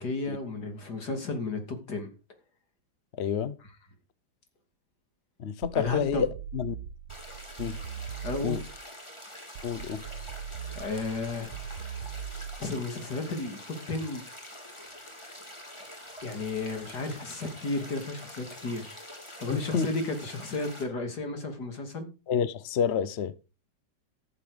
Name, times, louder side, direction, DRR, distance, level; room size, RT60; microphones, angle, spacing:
voice 1, 0.0-2.1 5.7-6.3 8.2-8.6 10.7-11.7 12.6-14.2 16.2-19.0 19.4-22.1, left 3 dB, 50° left, 3.4 m, -33 dB
voice 2, 3.2-3.6 5.4-6.3 6.5-6.8 7.6-7.8 8.4-8.6 9.6-10.0 19.5-19.9 22.3-23.3, left 7 dB, 70° left, 0.6 m, -28 dB
sound 1, 5.6-8.9 9.6-12.9, right 8 dB, 90° right, 1.7 m, -40 dB
sound 2, 7.1-20.8, left 1 dB, 15° left, 3.3 m, -46 dB
14.0 x 8.1 x 5.1 m
omnidirectional pair, 2.3 m